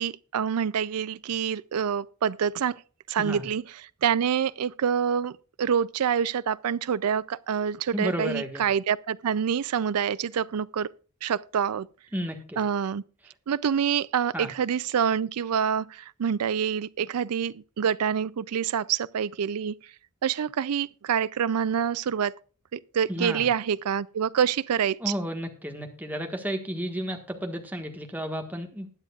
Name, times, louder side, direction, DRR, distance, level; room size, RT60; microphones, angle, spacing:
voice 1, 0.0-2.8 3.1-3.6 4.0-5.3 5.6-10.9 11.2-11.9 12.6-13.0 13.5-19.7 20.2-22.3 22.7-25.1, right 7 dB, 80° right, 0.4 m, -26 dB
voice 2, 7.9-8.6 12.1-12.6 14.3-14.5 23.1-23.5 25.0-28.9, equal, 10° right, 1.5 m, -32 dB
20.5 x 9.2 x 2.4 m
head